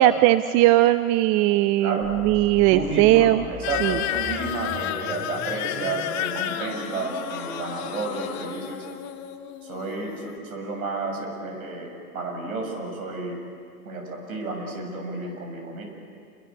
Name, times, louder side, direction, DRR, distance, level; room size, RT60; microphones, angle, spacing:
voice 1, 0.0-3.4 3.8-4.0, right 15 dB, 40° right, 12 dB, 0.7 m, -19 dB
voice 2, 1.8-2.2 2.7-8.9 9.6-13.4 13.8-15.8, right 3 dB, 70° right, 2 dB, 7.6 m, -31 dB
sound 1, 2.0-8.4, left 4 dB, 15° left, 3.8 m, -40 dB
sound 2, 3.6-10.4, left 12 dB, 40° left, 1.7 m, -32 dB
28.0 x 23.5 x 7.2 m, 2.3 s
hypercardioid pair, 100°, 43 cm